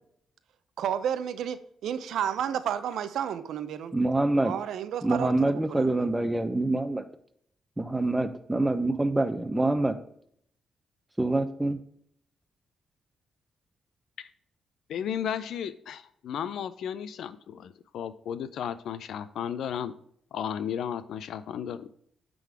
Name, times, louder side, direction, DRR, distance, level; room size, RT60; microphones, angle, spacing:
voice 1, 0.8-3.9 4.4-6.1, right 9 dB, 85° right, 0.6 m, -31 dB
voice 2, 3.9-4.5 5.0-7.0 7.8-10.0 11.2-11.8, right 2 dB, 15° right, 0.9 m, -26 dB
voice 3, 14.9-19.9 20.3-21.9, left 8 dB, 80° left, 0.5 m, -34 dB
8.9 x 3.9 x 4.8 m
cardioid pair, 70°, 0 cm